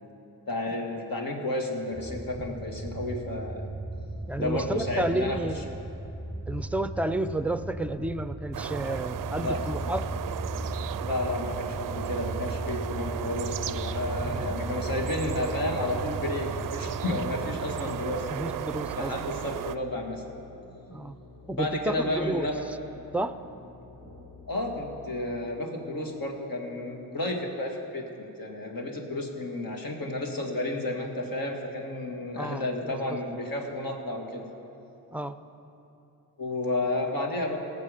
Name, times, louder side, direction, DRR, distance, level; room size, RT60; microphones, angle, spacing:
voice 1, 0.5-3.6 4.4-5.6 9.4-9.6 11.0-18.3 19.0-20.2 21.6-22.6 24.5-34.5 36.4-37.6, left 2 dB, 60° left, 1 dB, 1.9 m, -32 dB
sound 1, 1.9-18.7, right 1 dB, 15° left, 1.4 m, -37 dB
voice 2, 4.3-5.7 6.5-10.1 14.2-14.4 18.3-19.1 20.9-21.1 21.5-22.5 23.1-23.3 32.4-33.2 35.1-35.4, right 1 dB, 5° right, 12 dB, 0.5 m, -31 dB
sound 2, 8.5-19.8, right 10 dB, 55° right, 0.5 m, -35 dB
sound 3, 9.2-25.2, left 3 dB, 90° left, 2.5 m, -50 dB
18.0 x 7.0 x 5.0 m, 2.9 s
supercardioid pair, 50°, 39 cm